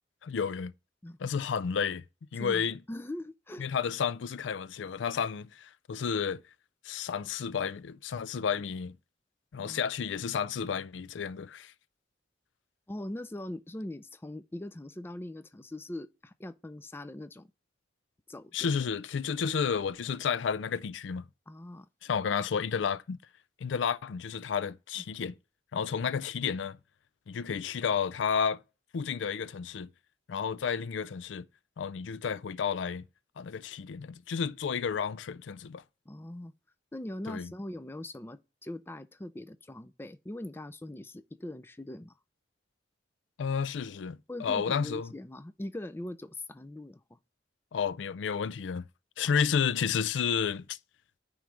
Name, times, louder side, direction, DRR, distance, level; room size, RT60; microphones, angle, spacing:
voice 1, 0.2-0.7 1.2-2.0 2.3-2.8 3.6-6.4 6.8-8.9 9.5-11.7 18.5-21.2 22.0-23.2 23.6-25.3 25.7-26.8 27.3-28.6 28.9-29.9 30.3-31.4 31.8-33.0 33.4-35.8 37.3-37.5 43.4-45.1 47.7-48.8 49.2-50.8, left 6 dB, 85° left, 0.4 m, -31 dB
voice 2, 2.4-3.7 9.6-9.8 12.9-17.5 18.3-18.7 21.5-21.9 36.1-36.5 36.9-42.1 44.3-47.2 49.2-49.3, left 1 dB, 10° left, 0.4 m, -41 dB
9.2 x 3.2 x 5.0 m
head